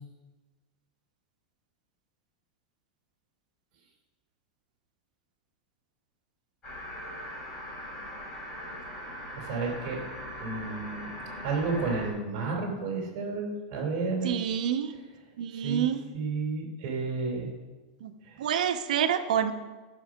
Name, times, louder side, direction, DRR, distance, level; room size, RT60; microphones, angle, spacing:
sound 1, 6.6-12.1, equal, 20° left, 2.8 m, -40 dB
voice 1, 9.3-10.0 10.4-11.1 11.4-14.4 15.6-15.9 16.1-17.5 18.3-18.4, right 4 dB, 35° right, 0 dB, 3.6 m, -31 dB
voice 2, 14.2-14.9 15.4-16.0 18.0-18.1 18.4-19.5, right 9 dB, 85° right, 8 dB, 1.1 m, -27 dB
14.0 x 6.3 x 6.4 m, 1.3 s
supercardioid pair, 175°, 4 cm